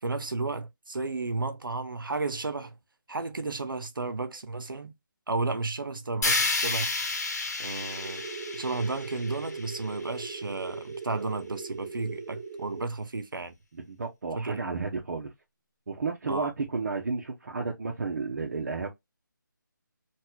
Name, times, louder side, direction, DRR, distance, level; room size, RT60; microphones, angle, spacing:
voice 1, 0.0-2.8 3.1-4.9 5.3-6.9 7.6-8.3 8.5-13.5 14.4-14.8 16.3-16.5, right 3 dB, 85° right, 0.8 m, -33 dB
sound 1, 6.2-10.3, left 3 dB, 50° left, 1.0 m, -31 dB
sound 2, 7.8-12.8, right 4 dB, 15° right, 0.4 m, -40 dB
voice 2, 13.7-15.3 15.9-18.9, right 4 dB, 55° right, 0.9 m, -32 dB
4.1 x 2.4 x 2.2 m
figure-of-eight pair, 165°, 11 cm